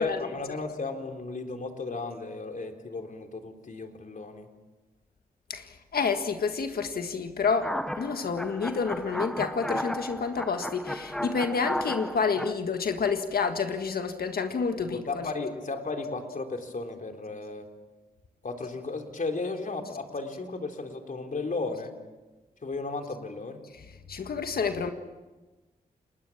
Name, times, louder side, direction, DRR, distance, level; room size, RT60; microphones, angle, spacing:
voice 1, 0.0-4.5 14.8-17.7 18.4-21.9 22.6-23.6, left 3 dB, 55° left, 3.5 m, -34 dB
voice 2, 5.5-15.3 24.1-24.9, left 5 dB, 75° left, 1.7 m, -29 dB
sound 1, 7.5-12.5, equal, 5° left, 1.1 m, -34 dB
30.0 x 20.0 x 7.3 m
cardioid pair, 55°, 16 cm